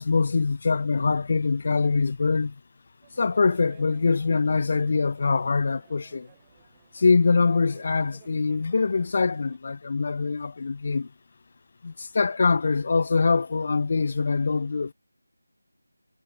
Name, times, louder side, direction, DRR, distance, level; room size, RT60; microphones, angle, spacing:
voice 1, 0.0-2.5 3.2-6.3 6.9-11.1 11.8-14.9, left 4 dB, 35° left, 0.7 m, -23 dB
sound 1, 3.0-9.6, right 12 dB, 15° right, 5.3 m, -57 dB
figure-of-eight pair, 165°, 0 cm